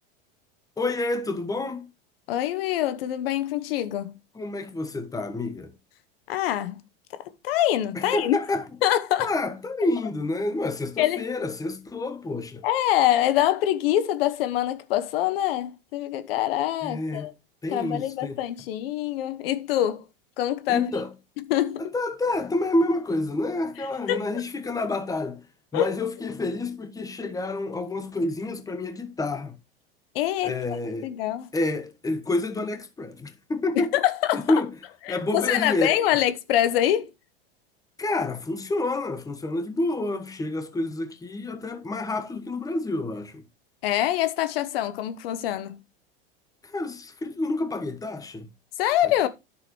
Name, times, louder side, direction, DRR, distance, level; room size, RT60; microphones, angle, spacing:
voice 1, 0.8-1.9 4.3-5.7 7.9-8.6 9.2-12.6 16.8-17.3 17.6-18.4 20.7-21.1 21.8-25.4 25.7-29.6 30.4-31.1 31.5-33.9 34.3-34.7 35.1-36.0 38.0-43.4 46.6-48.5, left 2 dB, 10° left, 1.2 m, -28 dB
voice 2, 2.3-4.2 6.3-6.8 7.4-8.4 8.8-9.3 11.0-11.2 12.6-17.3 17.7-20.0 20.4-20.9 21.5-21.9 24.1-24.2 25.7-25.9 30.1-30.6 31.0-31.5 33.8-34.6 35.1-37.1 43.8-45.8 48.8-49.3, left 12 dB, 70° left, 1.1 m, -25 dB
10.0 x 6.7 x 3.1 m
hypercardioid pair, 110°, 30 cm